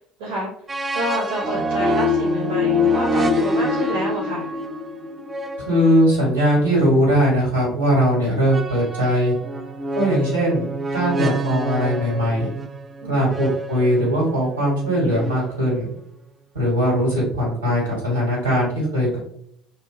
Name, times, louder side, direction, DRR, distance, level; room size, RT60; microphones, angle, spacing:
voice 1, 0.2-0.5 0.9-4.5 13.0-13.3, right 1 dB, 70° right, -5 dB, 0.7 m, -28 dB
sound 1, 0.7-7.4 8.5-15.8, right 2 dB, 30° right, 0.3 m, -29 dB
sound 2, 1.8-5.4, left 7 dB, 55° left, 0.4 m, -24 dB
voice 2, 5.7-9.3 9.9-12.5 13.1-15.9 16.5-19.2, equal, 90° right, -4 dB, 1.1 m, -20 dB
2.7 x 2.1 x 2.4 m, 0.66 s
figure-of-eight pair, 60°, 0 cm